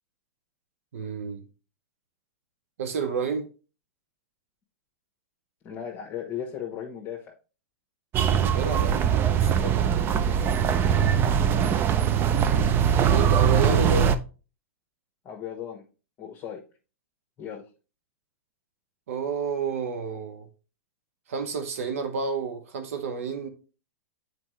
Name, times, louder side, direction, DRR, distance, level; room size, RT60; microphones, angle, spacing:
voice 1, 0.9-1.4 2.8-3.5 8.3-9.9 13.1-14.1 19.1-20.5 21.3-23.5, right 5 dB, 75° right, 1.0 m, -30 dB
voice 2, 5.6-7.3 10.8-11.4 15.2-15.8 16.2-16.6 17.4-17.7, left 8 dB, 30° left, 1.2 m, -36 dB
sound 1, 8.1-14.1, right 8 dB, 30° right, 0.5 m, -22 dB
7.5 x 4.6 x 3.2 m
hypercardioid pair, 125°, 8 cm